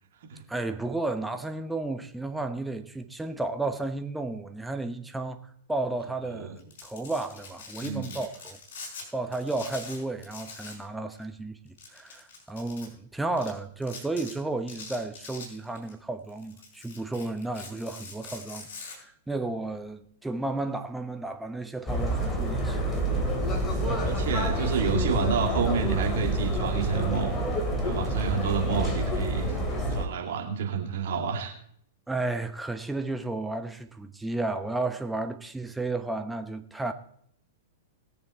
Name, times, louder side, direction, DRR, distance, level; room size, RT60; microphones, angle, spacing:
voice 1, 0.5-5.4 5.7-8.6 9.1-23.0 32.1-36.9, right 2 dB, 5° right, 1.0 m, -33 dB
Domestic sounds home sounds, 6.6-9.1 9.3-10.9 11.1-11.2 11.8-12.9 13.4-13.5 13.8-14.3 14.7-15.9 16.3-19.0, left 4 dB, 55° left, 5.0 m, -43 dB
voice 2, 7.8-8.1 24.0-27.3 27.8-31.5, right 6 dB, 55° right, 2.5 m, -30 dB
sound 1, 21.9-30.1, right 1 dB, 15° left, 2.8 m, -28 dB
20.5 x 6.9 x 4.4 m
figure-of-eight pair, 100°, 0 cm